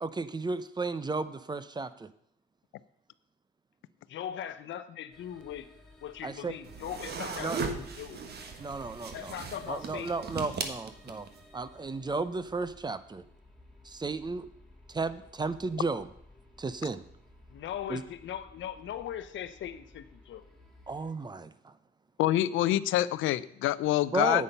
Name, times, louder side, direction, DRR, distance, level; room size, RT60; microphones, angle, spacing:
voice 1, 0.0-2.1 6.2-6.5 7.4-7.6 8.6-9.4 9.7-11.3 11.5-13.2 13.8-14.5 14.9-16.1 16.6-17.0 17.9-18.0 20.9-21.7 24.1-24.4, right 3 dB, 20° right, 14 dB, 0.7 m, -34 dB
voice 2, 4.1-5.7 6.0-8.2 9.1-10.1 17.5-20.4, left 10 dB, 70° left, 11 dB, 0.9 m, -40 dB
sound 1, 5.1-21.1, left 2 dB, ahead, 3.6 m, -57 dB
sound 2, 6.6-11.4, right 4 dB, 55° right, 1.4 m, -38 dB
voice 3, 22.2-24.4, left 14 dB, 90° left, 18 dB, 0.5 m, -26 dB
9.8 x 8.6 x 5.5 m, 0.72 s
cardioid pair, 90°, 20 cm